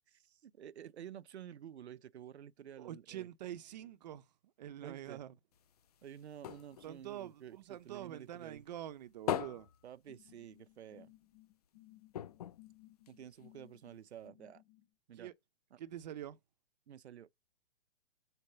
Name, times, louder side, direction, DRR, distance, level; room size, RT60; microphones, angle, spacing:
voice 1, 0.1-3.3 4.8-5.2 6.0-8.6 9.8-11.1 13.1-14.6 15.1-15.3 15.7-15.8 16.9-17.4, right 10 dB, 90° right, 0.7 m, -51 dB
voice 2, 2.8-4.3 4.6-5.3 6.8-9.7 15.1-15.3 15.8-16.4, right 11 dB, 40° right, 0.8 m, -45 dB
sound 1, 5.5-8.2 8.5-10.8 11.1-11.2 11.5-11.7 12.1-13.6 14.3-14.4, left 10 dB, 40° left, 0.4 m, -42 dB
sound 2, 10.1-14.9, left 17 dB, 55° left, 4.2 m, -61 dB
7.0 x 4.2 x 6.6 m
hypercardioid pair, 155°, 32 cm